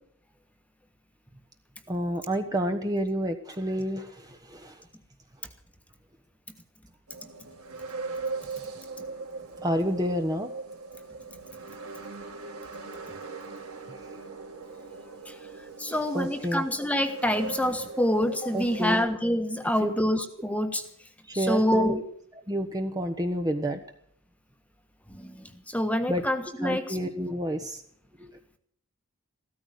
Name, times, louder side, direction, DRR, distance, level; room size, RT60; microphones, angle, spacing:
voice 1, 1.9-4.8 9.6-10.5 16.1-16.7 18.5-19.0 19.8-19.9 21.3-22.0 22.5-23.8 26.1-26.2 26.6-27.8 28.2-28.3, equal, 15° right, 5 dB, 1.1 m, -29 dB
sound 1, 7.1-19.0, right 4 dB, 85° right, 3.7 m, -39 dB
voice 2, 15.8-20.8 21.5-22.0 25.1-25.4 25.7-27.0, left 1 dB, 5° left, 7 dB, 1.3 m, -26 dB
16.0 x 13.5 x 6.5 m, 0.67 s
head